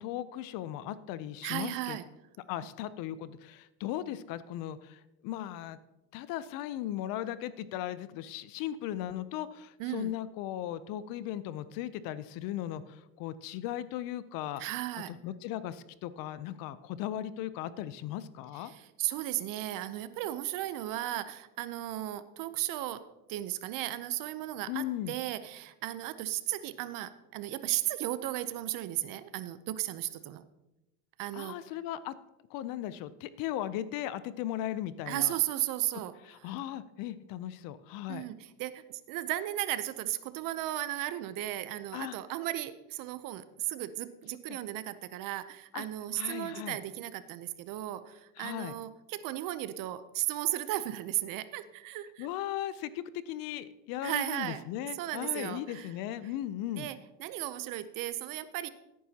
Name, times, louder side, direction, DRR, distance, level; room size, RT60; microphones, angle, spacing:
voice 1, 0.0-2.0 2.5-5.8 6.1-14.6 15.1-18.7 24.7-25.1 31.3-32.2 32.5-35.4 36.2-38.3 41.9-42.2 44.5-44.6 45.7-45.9 46.1-46.8 48.4-48.7 52.2-56.9, left 12 dB, 45° left, 15 dB, 0.5 m, -37 dB
voice 2, 1.4-2.0 9.8-10.1 14.6-15.1 18.6-30.4 31.2-31.6 35.1-36.1 38.1-52.3 54.0-54.6 55.0-55.9 56.8-58.7, right 15 dB, 45° right, 13 dB, 0.6 m, -35 dB
16.0 x 9.4 x 2.8 m, 0.94 s
supercardioid pair, 135°, 47 cm